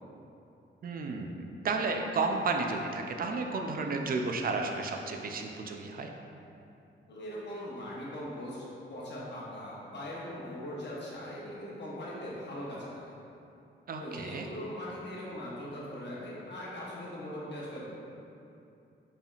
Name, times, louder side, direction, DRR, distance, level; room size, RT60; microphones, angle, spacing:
voice 1, 0.8-6.1 13.9-14.5, right 3 dB, 45° right, 3 dB, 0.4 m, -32 dB
voice 2, 7.1-8.6 8.9-13.0 14.0-17.8, left 1 dB, 60° left, -6 dB, 1.0 m, -40 dB
4.7 x 3.4 x 2.4 m, 2.7 s
wide cardioid pair, 125°, 21 cm